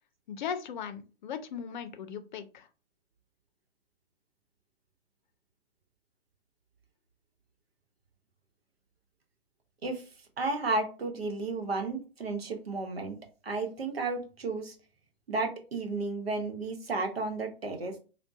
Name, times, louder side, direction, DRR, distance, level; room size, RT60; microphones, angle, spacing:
voice 1, 0.3-2.7, left 7 dB, 50° left, 0.5 m, -38 dB
voice 2, 10.4-13.2 13.4-14.7 15.3-17.9, right 3 dB, 85° right, 0.9 m, -33 dB
3.6 x 2.2 x 2.3 m
hypercardioid pair, 120°, 30 cm